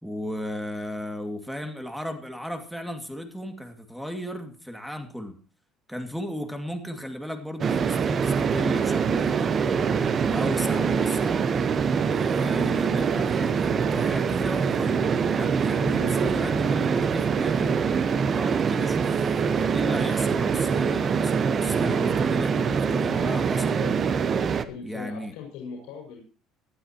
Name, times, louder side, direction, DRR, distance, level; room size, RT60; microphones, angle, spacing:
voice 1, 0.0-5.4 5.9-9.8 10.2-11.4 12.0-17.7 18.3-23.8 24.8-25.3, equal, ahead, 6 dB, 2.3 m, -35 dB
sound 1, 7.6-24.6, right 6 dB, 35° right, 1.0 m, -24 dB
voice 2, 15.7-16.7 23.7-24.0 24.6-26.2, left 6 dB, 85° left, 1 dB, 5.5 m, -40 dB
19.0 x 12.0 x 3.0 m, 0.36 s
cardioid pair, 125°, 0 cm